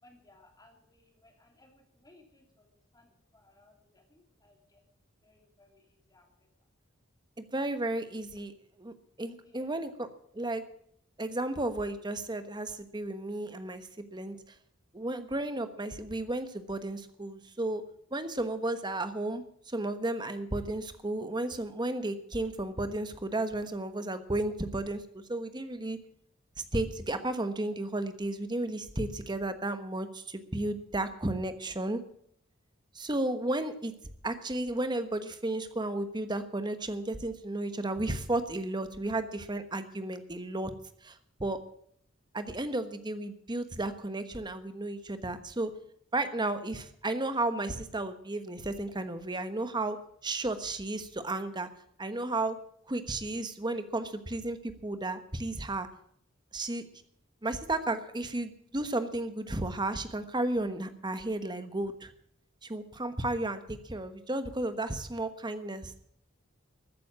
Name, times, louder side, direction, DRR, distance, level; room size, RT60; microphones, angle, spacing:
voice 1, 0.0-4.8 5.2-6.3 6.6-6.7 9.4-9.8, left 2 dB, 20° left, 2 dB, 3.0 m, -62 dB
voice 2, 7.4-8.5 8.8-10.1 10.3-10.6 11.2-14.4 14.9-17.8 18.1-26.0 26.6-32.0 32.9-33.9 34.2-40.7 41.0-41.6 42.3-45.7 46.1-51.7 52.0-52.6 52.9-55.9 56.5-56.8 57.4-62.1 62.6-66.0, right 2 dB, 20° right, 10 dB, 1.2 m, -33 dB
14.0 x 9.6 x 7.4 m, 0.67 s
head